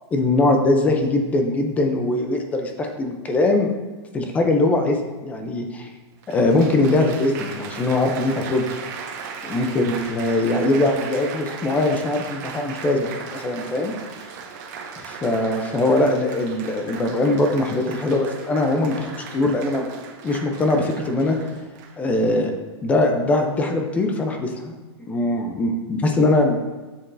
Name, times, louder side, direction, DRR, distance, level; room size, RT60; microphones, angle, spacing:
voice 1, 0.1-3.7 4.1-5.9 6.3-8.7 9.4-13.9 15.0-19.9 20.2-21.4 22.0-22.5 22.8-24.8 25.1-26.6, left 2 dB, 10° left, 4 dB, 0.5 m, -21 dB
Applause, 6.2-22.1 22.9-23.2, right 5 dB, 40° right, 0.9 m, -37 dB
7.1 x 6.7 x 2.6 m, 1.3 s
hypercardioid pair, 165°, 15 cm